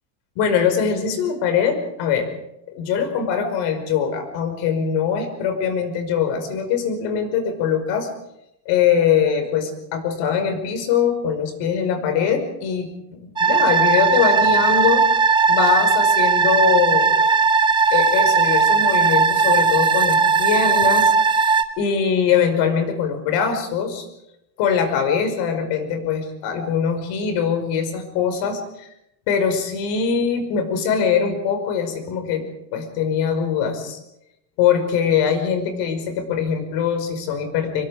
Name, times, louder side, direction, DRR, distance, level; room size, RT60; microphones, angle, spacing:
voice 1, 0.4-2.3 2.7-8.1 8.7-15.1 15.5-17.1 17.9-24.1 24.6-28.9 29.3-32.5 32.7-34.0 34.6-37.8, left 7 dB, 55° left, 7 dB, 5.4 m, -22 dB
sound 1, 13.4-21.6, right 5 dB, 10° right, 1.0 m, -17 dB
26.0 x 23.0 x 5.0 m, 0.83 s
supercardioid pair, 145°, 49 cm